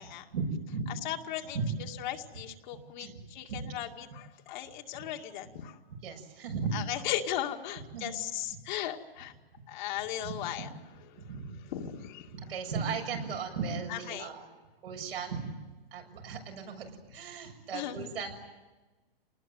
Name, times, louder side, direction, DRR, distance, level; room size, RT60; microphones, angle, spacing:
voice 1, 0.3-0.9 1.5-2.1 3.0-3.2 3.5-3.7 6.0-6.9 7.9-8.2 10.2-10.4 11.2-11.6 12.3-14.5 14.8-15.5 15.9-18.3, right 5 dB, 70° right, 3 dB, 7.2 m, -36 dB
voice 2, 1.0-1.6 2.0-5.8 6.7-9.3 9.7-10.7 11.1-11.3 11.7-12.3 13.9-14.3 17.7-18.1, left 12 dB, 50° left, 4 dB, 2.4 m, -37 dB
28.0 x 20.0 x 9.4 m, 1.2 s
hypercardioid pair, 145°, 30 cm